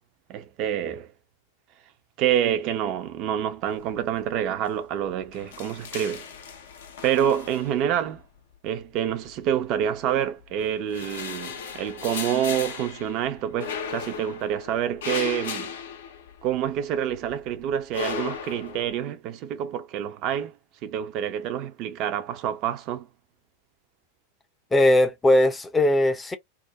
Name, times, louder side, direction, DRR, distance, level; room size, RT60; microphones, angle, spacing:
voice 1, 0.3-1.1 2.2-6.2 7.0-8.2 8.6-15.7 16.4-20.5 20.8-23.1, right 10 dB, 40° right, 0.5 m, -27 dB
sound 1, 3.8-4.3 4.6-4.7 5.1-8.2 9.1-10.0 10.5-16.8 17.1-19.0, left 7 dB, 60° left, 0.5 m, -36 dB
voice 2, 24.7-26.4, left 1 dB, 10° left, 0.5 m, -19 dB
2.3 x 2.1 x 2.6 m
figure-of-eight pair, 90°, 0 cm